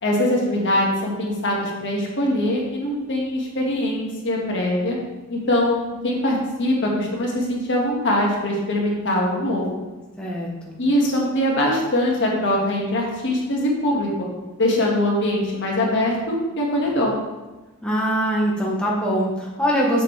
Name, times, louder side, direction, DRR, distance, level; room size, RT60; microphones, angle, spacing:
voice 1, 0.0-5.0 5.3-9.7 10.8-14.3 14.6-17.1, left 1 dB, 55° left, -2 dB, 1.8 m, -22 dB
voice 2, 10.2-10.8 17.8-20.0, equal, 5° left, -4 dB, 1.0 m, -23 dB
7.4 x 7.3 x 3.3 m, 1.1 s
head